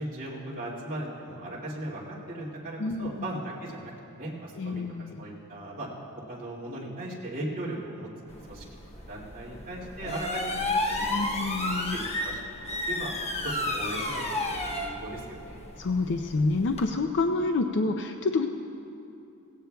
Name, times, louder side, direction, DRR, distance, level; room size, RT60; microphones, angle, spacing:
voice 1, 0.0-5.9 6.3-8.6 9.1-12.4 12.9-13.1 13.4-15.6, right 1 dB, 40° right, -6 dB, 2.2 m, -38 dB
voice 2, 2.8-3.1 4.6-5.2 11.1-12.0 15.8-18.5, left 3 dB, 55° left, 5 dB, 0.5 m, -28 dB
sound 1, 8.3-16.9, left 2 dB, 30° left, 1.0 m, -32 dB
17.0 x 16.5 x 2.3 m, 2.7 s
head